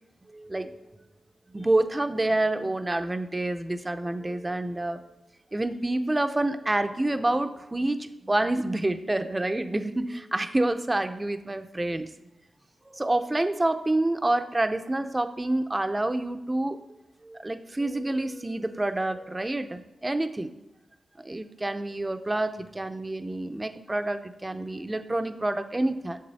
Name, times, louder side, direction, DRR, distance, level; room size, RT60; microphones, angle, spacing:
voice 1, 0.3-0.7 1.5-5.0 5.5-12.1 12.9-16.8 17.2-20.5 21.2-26.2, right 2 dB, 15° right, 9 dB, 0.5 m, -28 dB
10.0 x 7.2 x 4.1 m, 0.95 s
wide cardioid pair, 120°, 0 cm